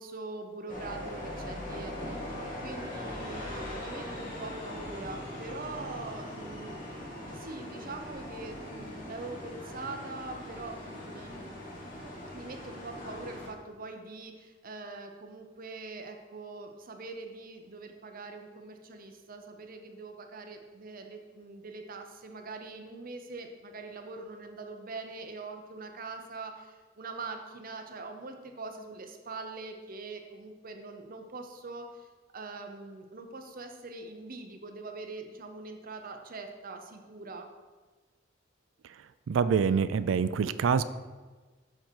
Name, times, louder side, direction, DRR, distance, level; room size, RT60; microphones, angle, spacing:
voice 1, 0.0-6.9 7.3-11.5 12.3-32.1 32.3-37.5, right 3 dB, 50° right, 5 dB, 0.8 m, -43 dB
sound 1, 0.7-13.5, left 1 dB, 45° left, 1.8 m, -40 dB
voice 2, 39.3-40.8, right 6 dB, 90° right, 14 dB, 0.3 m, -25 dB
7.4 x 4.4 x 4.5 m, 1.3 s
head